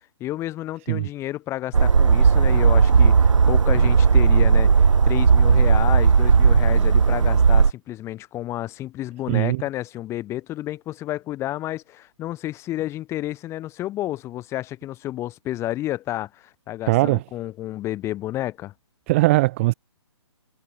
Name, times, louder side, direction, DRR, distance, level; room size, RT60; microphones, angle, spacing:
voice 1, 0.2-18.7, left 14 dB, 15° left, 6.2 m, -31 dB
sound 1, 1.7-7.7, right 5 dB, 80° right, 1.7 m, -16 dB
voice 2, 9.3-9.6 16.9-17.2 19.1-19.7, right 20 dB, 25° right, 0.9 m, -20 dB
hypercardioid pair, 155°, 16 cm